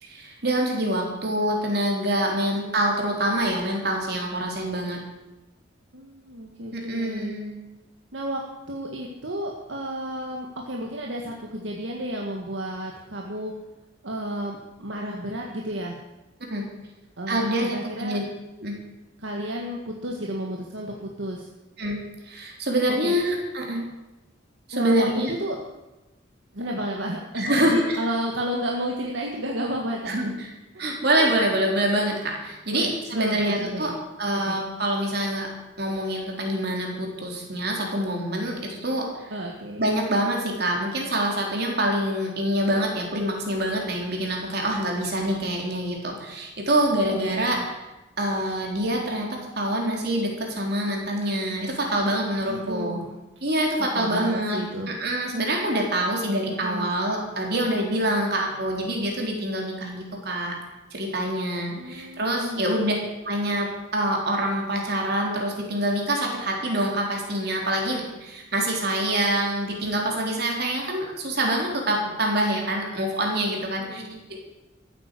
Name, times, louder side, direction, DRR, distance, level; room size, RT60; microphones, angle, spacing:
voice 1, 0.0-5.0 6.7-7.6 16.4-16.6 17.3-18.2 18.6-18.7 21.8-23.8 24.7-25.3 27.3-28.0 30.1-30.5 30.8-33.9 34.2-35.5 35.8-39.3 39.8-47.8 48.2-53.0 53.4-54.6 54.9-60.6 60.9-62.9 63.3-74.0 74.3-74.4, right 1 dB, 55° right, 0 dB, 3.9 m, -26 dB
voice 2, 5.9-7.3 8.1-8.4 8.7-13.5 14.0-16.0 17.2-18.2 19.2-21.5 22.9-23.1 24.7-25.6 26.5-30.3 30.7-30.8 31.2-31.3 31.7-31.8 32.7-34.0 34.3-34.6 39.3-39.9 47.0-47.7 52.5-53.1 53.8-54.9 56.4-56.9 61.8-63.1 73.8-74.2, equal, 75° right, 0 dB, 1.8 m, -32 dB
14.5 x 9.1 x 8.3 m, 1.0 s
head